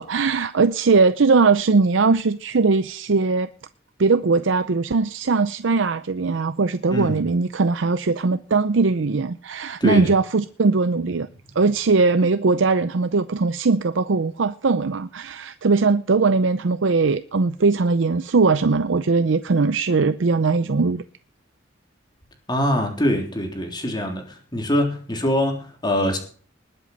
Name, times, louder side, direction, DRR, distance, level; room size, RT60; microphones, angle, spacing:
voice 1, 0.0-3.5 4.0-11.3 11.6-21.0, right 4 dB, 80° right, 0.6 m, -20 dB
voice 2, 6.9-7.2 9.8-10.1 22.5-26.2, equal, 25° left, 3.6 m, -23 dB
20.0 x 7.9 x 5.5 m
head